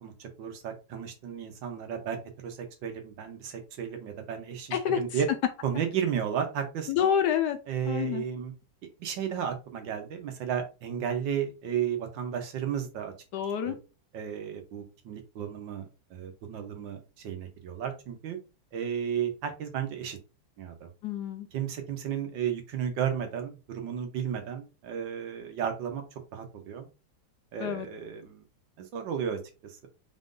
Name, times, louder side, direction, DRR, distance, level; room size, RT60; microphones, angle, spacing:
voice 1, 0.0-5.3 5.6-6.9 7.7-8.5 9.0-13.1 13.6-13.8 14.1-18.4 18.7-20.2 20.6-20.9 21.5-26.9 27.5-28.4 28.8-29.9, right 8 dB, 75° right, 5 dB, 1.6 m, -33 dB
voice 2, 4.7-5.0 6.9-7.6 7.8-8.2 13.3-13.7 21.0-21.5 27.6-27.9, left 9 dB, 70° left, 9 dB, 1.1 m, -27 dB
4.7 x 2.6 x 3.7 m, 0.31 s
omnidirectional pair, 2.1 m